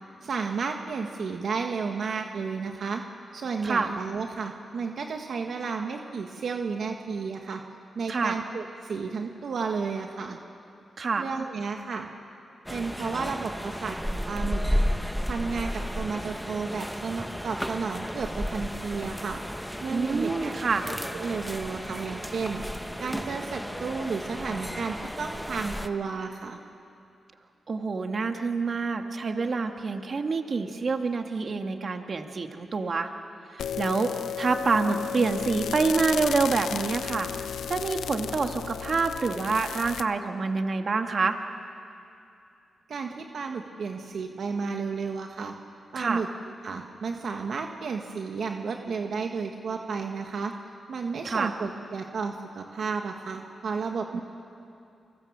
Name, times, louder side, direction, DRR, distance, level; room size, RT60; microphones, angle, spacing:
voice 1, 0.2-3.0 3.3-7.6 8.0-10.4 11.2-12.1 12.7-14.8 15.3-19.4 19.8-20.5 20.9-26.6 42.9-45.5 45.9-46.3 46.6-50.5 50.9-54.2, right 5 dB, 70° right, 3 dB, 1.6 m, -32 dB
sound 1, 12.7-25.9, equal, ahead, 1.2 m, -33 dB
voice 2, 19.9-20.9 27.7-33.1 33.8-37.3 37.7-41.4 46.0-46.2 51.2-51.5 54.1-54.2, right 4 dB, 55° right, 5 dB, 2.0 m, -27 dB
sound 2, 33.6-40.0, left 8 dB, 85° left, 0.7 m, -34 dB
30.0 x 25.0 x 7.5 m, 2.6 s
cardioid pair, 60°, 0 cm